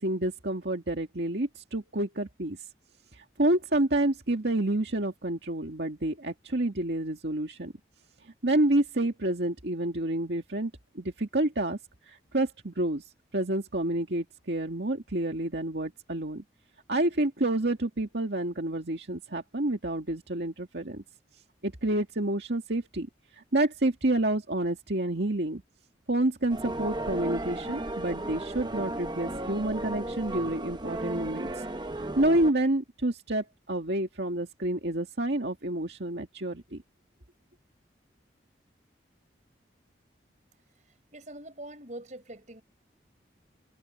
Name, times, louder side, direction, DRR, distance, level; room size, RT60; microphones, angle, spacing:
voice 1, 0.0-2.6 3.1-7.7 8.2-10.7 11.0-11.8 12.1-16.4 16.9-21.0 21.6-23.1 23.4-25.6 26.1-31.6 32.0-36.8, right 1 dB, 70° right, 2.1 m, -29 dB
sound 1, 26.5-32.5, right 1 dB, 25° right, 0.8 m, -35 dB
voice 2, 41.1-42.6, right 1 dB, 40° right, 5.9 m, -43 dB
head